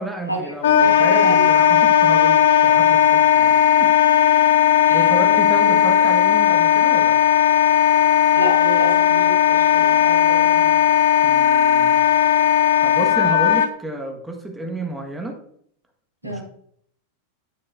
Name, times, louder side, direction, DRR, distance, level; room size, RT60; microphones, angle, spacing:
voice 1, 0.0-3.9 4.3-4.6 4.9-7.1 11.2-12.0 12.5-15.4 16.2-16.4, right 1 dB, 5° right, 2 dB, 1.5 m, -31 dB
Wind instrument woodwind instrument, 0.6-13.7, left 10 dB, 60° left, 0.8 m, -16 dB
voice 2, 0.8-1.5 4.8-5.7 8.3-10.8 16.2-16.4, equal, 90° left, -1 dB, 2.2 m, -28 dB
9.3 x 9.2 x 2.6 m, 0.67 s
figure-of-eight pair, 90°, 0 cm